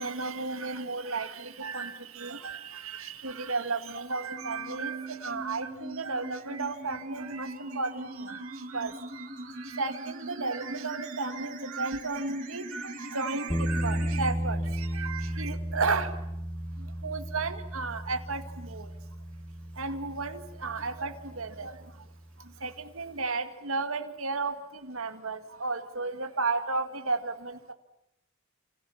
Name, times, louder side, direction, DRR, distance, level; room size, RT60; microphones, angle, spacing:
voice 1, 0.0-9.3 9.5-16.1 17.0-18.9 19.8-21.8 22.6-27.7, right 3 dB, 70° right, 8 dB, 2.0 m, -33 dB
sound 1, 4.3-14.3, right 2 dB, 40° right, 4.7 m, -41 dB
sound 2, 13.5-22.4, equal, 5° left, 1.4 m, -34 dB
28.5 x 27.5 x 7.2 m, 0.81 s
head